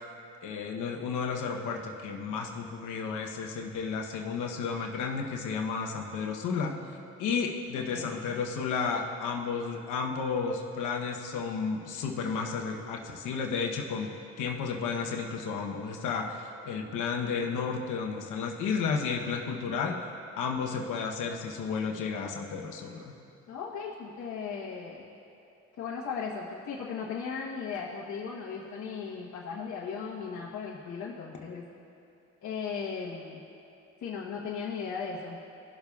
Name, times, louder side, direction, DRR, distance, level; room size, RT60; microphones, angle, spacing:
voice 1, 0.4-6.7 7.2-14.1 14.4-20.0 20.4-23.1, left 5 dB, 85° left, 1 dB, 0.9 m, -32 dB
voice 2, 23.5-25.0 25.8-31.6 32.4-33.4 34.0-35.4, left 6 dB, 65° left, -6 dB, 1.1 m, -37 dB
17.5 x 6.9 x 2.4 m, 2.7 s
cardioid pair, 90°, 30 cm